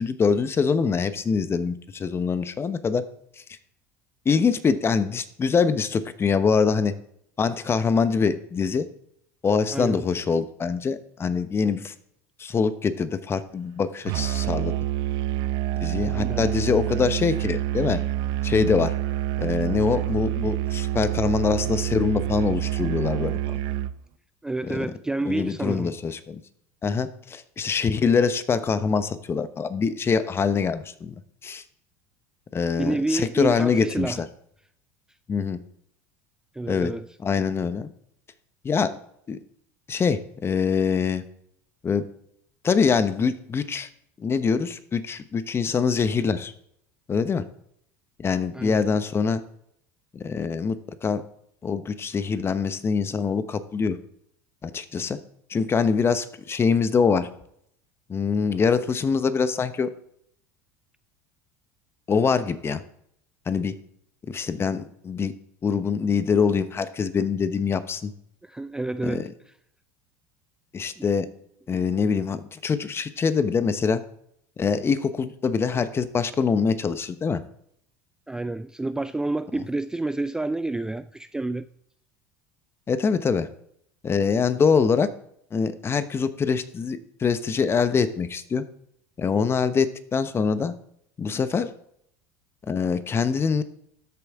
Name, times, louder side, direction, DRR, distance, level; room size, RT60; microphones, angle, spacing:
voice 1, 0.0-3.0 4.2-6.9 7.4-8.8 9.4-11.9 12.4-14.7 15.8-18.0 18.4-18.9 19.4-23.4 24.6-24.9 25.3-26.4 26.8-31.1 31.4-31.6 32.5-34.3 35.3-35.6 36.7-36.9 37.2-37.9 38.6-38.9 39.3-39.4 39.9-41.2 41.8-42.0 42.6-43.9 44.2-46.5 47.1-47.4 48.2-49.4 50.1-50.8 51.0-51.2 51.6-54.0 54.6-55.2 55.5-57.3 58.1-59.9 62.1-62.8 63.5-63.7 64.3-65.3 65.6-68.1 69.0-69.3 70.7-71.3 71.7-74.0 74.6-77.4 79.5-79.6 82.9-83.5 84.0-85.1 85.5-88.6 89.2-90.7 91.2-91.7 92.7-93.6, left 5 dB, 30° left, 12 dB, 1.0 m, -24 dB
voice 2, 9.7-10.0 16.1-16.4 24.4-25.9 32.8-34.2 36.5-37.1 48.5-48.8 68.4-69.3 71.0-71.1 78.3-81.7, right 2 dB, 10° right, 12 dB, 0.4 m, -29 dB
Musical instrument, 14.1-24.0, right 13 dB, 60° right, 0.5 m, -27 dB
13.0 x 8.4 x 3.6 m, 0.70 s
hypercardioid pair, 85°, 9 cm